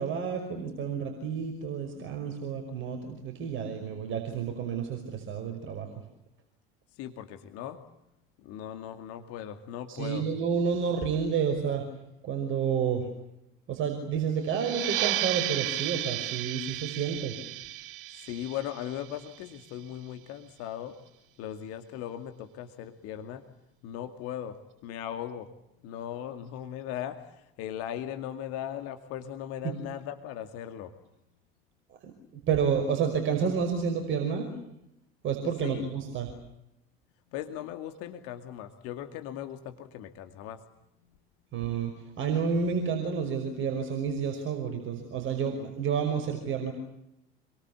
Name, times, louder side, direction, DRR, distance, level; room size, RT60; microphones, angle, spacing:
voice 1, 0.0-6.0 9.9-11.8 12.2-13.1 13.7-17.4 29.6-29.7 32.0-32.1 32.5-34.5 35.2-36.3 41.5-46.7, right 6 dB, 45° right, 4 dB, 5.6 m, -30 dB
voice 2, 7.0-7.8 8.4-10.3 18.2-21.0 21.4-23.4 23.8-25.5 25.8-30.9 35.6-35.9 37.3-40.6, left 10 dB, 55° left, 7 dB, 2.4 m, -38 dB
sound 1, 14.5-19.7, right 14 dB, 65° right, 0.9 m, -33 dB
28.0 x 23.0 x 8.4 m, 0.84 s
figure-of-eight pair, 70°, 29 cm